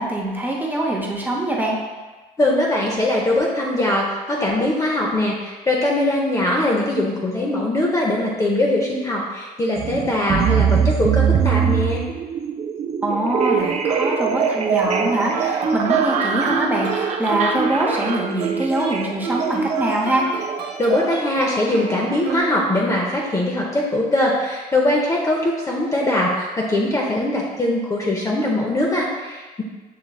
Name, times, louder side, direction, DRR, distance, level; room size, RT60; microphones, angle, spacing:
voice 1, 0.0-1.8 13.0-20.3, right 1 dB, 10° right, -2 dB, 0.8 m, -23 dB
voice 2, 2.4-12.0 20.8-29.6, left 1 dB, 20° left, -2 dB, 0.6 m, -21 dB
sound 1, 9.8-22.4, right 7 dB, 40° right, 0.4 m, -23 dB
Guitar, 15.3-23.0, right 4 dB, 80° right, 0.9 m, -30 dB
6.6 x 3.0 x 2.3 m, 1.3 s
cardioid pair, 110°, 17 cm